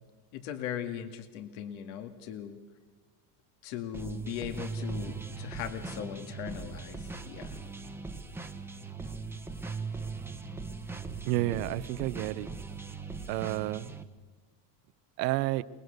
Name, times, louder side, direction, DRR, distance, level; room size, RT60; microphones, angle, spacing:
voice 1, 0.3-2.6 3.6-7.6, left 9 dB, 65° left, 2.2 m, -39 dB
sound 1, 3.9-14.0, right 4 dB, 5° right, 1.2 m, -40 dB
voice 2, 11.2-12.5 13.3-13.9 15.2-15.6, right 17 dB, 70° right, 1.1 m, -30 dB
29.5 x 20.0 x 6.8 m
supercardioid pair, 145°, 49 cm